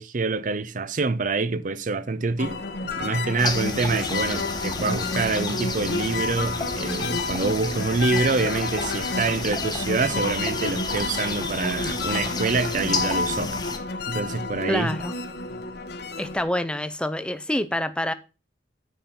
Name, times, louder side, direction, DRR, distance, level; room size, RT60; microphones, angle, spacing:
voice 1, 0.0-2.6 3.0-13.6 14.1-14.9, right 3 dB, 45° right, 0.6 m, -26 dB
sound 1, 2.4-16.4, left 3 dB, 60° left, 1.0 m, -30 dB
sound 2, 2.5-7.6, equal, 40° left, 1.5 m, -49 dB
sound 3, 3.4-13.8, left 4 dB, 25° left, 1.2 m, -32 dB
voice 2, 14.7-15.1 16.2-18.1, left 1 dB, 5° left, 0.6 m, -26 dB
9.2 x 4.3 x 6.8 m
head